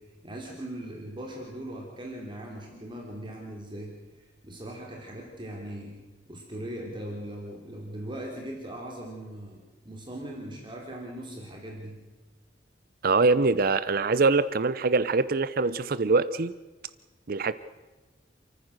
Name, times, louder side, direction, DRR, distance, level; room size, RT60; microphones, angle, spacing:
voice 1, 0.2-6.0 6.3-12.0, right 1 dB, 30° right, -1 dB, 3.3 m, -39 dB
voice 2, 13.0-16.5 17.3-17.5, right 3 dB, 55° right, 15 dB, 0.6 m, -23 dB
29.0 x 14.5 x 6.5 m, 1.2 s
head